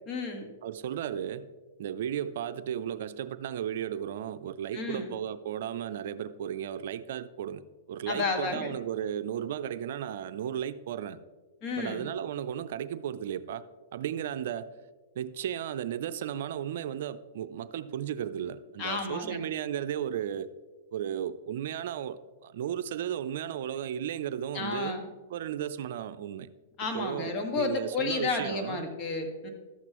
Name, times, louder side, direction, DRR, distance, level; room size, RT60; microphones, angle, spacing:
voice 1, 0.1-0.5 4.7-5.1 8.1-8.7 11.6-12.1 18.8-19.4 24.5-25.0 26.8-29.5, left 4 dB, 40° left, 4 dB, 1.6 m, -32 dB
voice 2, 0.6-1.5 1.8-7.6 7.9-11.2 11.8-13.6 13.9-14.7 15.2-20.5 20.9-25.0 25.3-26.5 26.9-28.9, right 10 dB, 65° right, 12 dB, 0.4 m, -34 dB
12.5 x 8.0 x 3.0 m, 1.3 s
hypercardioid pair, 130°, 0 cm